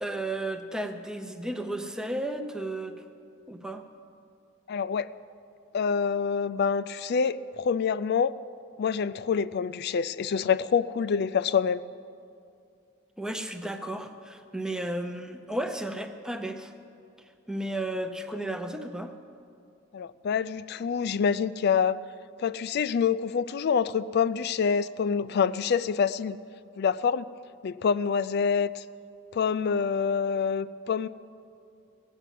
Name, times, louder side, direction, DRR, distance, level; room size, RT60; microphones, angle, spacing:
voice 1, 0.0-3.0 3.5-3.8 13.2-16.7 17.5-19.1, right 1 dB, 5° right, 7 dB, 0.7 m, -33 dB
voice 2, 4.7-5.1 5.7-8.3 8.8-11.8 19.9-22.0 22.4-26.4 26.8-27.3 27.6-28.8 29.3-31.1, left 6 dB, 50° left, 16 dB, 0.3 m, -26 dB
17.5 x 8.1 x 7.5 m, 2.5 s
head